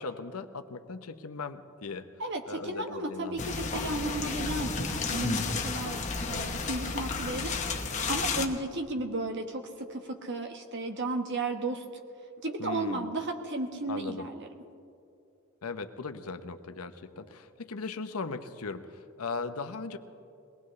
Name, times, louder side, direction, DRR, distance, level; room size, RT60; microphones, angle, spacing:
voice 1, 0.0-2.1 2.5-3.5 12.6-13.1 13.9-14.3 15.6-20.0, left 4 dB, 90° left, 8 dB, 0.9 m, -38 dB
voice 2, 2.2-6.0 6.2-7.6 8.1-11.8 12.4-14.5, right 2 dB, 55° right, 4 dB, 1.4 m, -34 dB
sound 1, 3.4-8.5, left 4 dB, 35° left, 1.1 m, -32 dB
22.5 x 19.0 x 3.3 m, 2.6 s
head